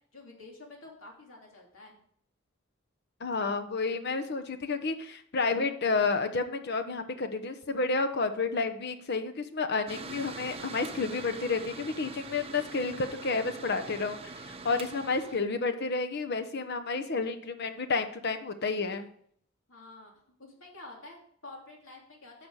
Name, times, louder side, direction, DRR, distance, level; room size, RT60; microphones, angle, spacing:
voice 1, 0.1-2.0 19.7-20.1 20.4-22.5, left 2 dB, 75° left, -1 dB, 3.0 m, -49 dB
voice 2, 3.2-14.3 14.6-19.1, left 4 dB, 55° left, 8 dB, 1.0 m, -30 dB
Mechanical fan, 9.9-15.4, right 4 dB, 30° right, 0.8 m, -43 dB
11.0 x 6.8 x 4.9 m, 0.64 s
head